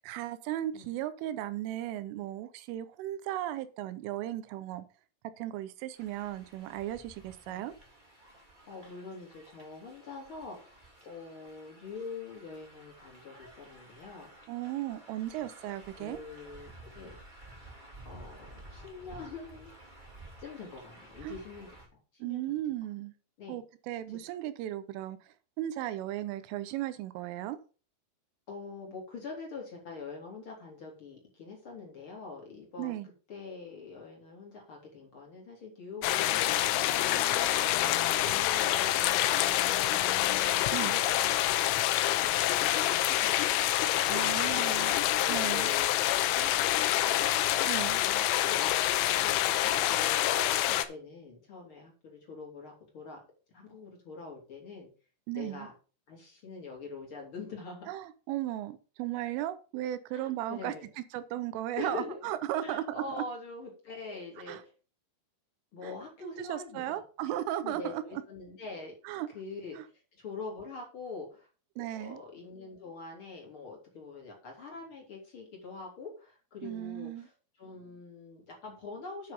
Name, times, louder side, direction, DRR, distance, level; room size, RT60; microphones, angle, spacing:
voice 1, 0.0-4.9 5.4-7.7 14.5-16.2 21.2-21.4 22.2-23.1 23.5-27.6 32.8-33.1 40.7-41.0 44.1-45.0 45.3-45.7 47.7-48.0 55.3-55.7 57.9-63.2 64.5-64.6 65.8-65.9 66.2-68.2 69.0-69.3 69.8-69.9 71.8-72.2 76.6-77.3, right 13 dB, 80° right, 13 dB, 3.2 m, -36 dB
sound 1, 6.0-21.9, right 1 dB, 15° right, 1.7 m, -53 dB
voice 2, 8.7-14.3 15.3-15.5 16.0-17.2 18.0-19.7 20.4-21.7 22.2-22.6 23.4-23.6 24.1-24.2 28.5-32.9 33.3-36.4 37.0-40.3 41.0-41.5 42.0-47.2 47.5-53.2 53.5-54.9 55.3-55.7 56.1-57.9 60.1-60.9 61.7-62.2 62.6-64.7 65.7-67.0 67.6-68.9 69.3-69.8 70.1-71.5 72.0-77.3 77.6-79.3, left 4 dB, 30° left, 0 dB, 2.9 m, -44 dB
sound 2, 36.0-50.9, left 14 dB, 85° left, 3.3 m, -27 dB
9.5 x 6.5 x 5.3 m, 0.36 s
omnidirectional pair, 5.9 m